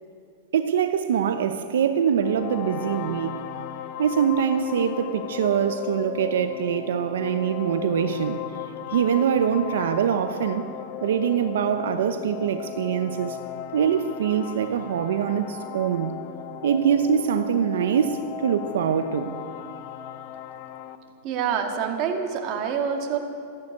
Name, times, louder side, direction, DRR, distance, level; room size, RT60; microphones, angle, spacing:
voice 1, 0.5-3.4 4.0-8.4 8.9-10.7 11.0-13.4 13.7-16.1 16.6-19.3, right 8 dB, 85° right, 9 dB, 0.8 m, -24 dB
sound 1, 2.1-21.0, left 11 dB, 45° left, 0.9 m, -36 dB
voice 2, 21.2-23.2, right 7 dB, 40° right, 3 dB, 1.9 m, -26 dB
14.5 x 11.5 x 8.3 m, 2.7 s
supercardioid pair, 155°, 0 cm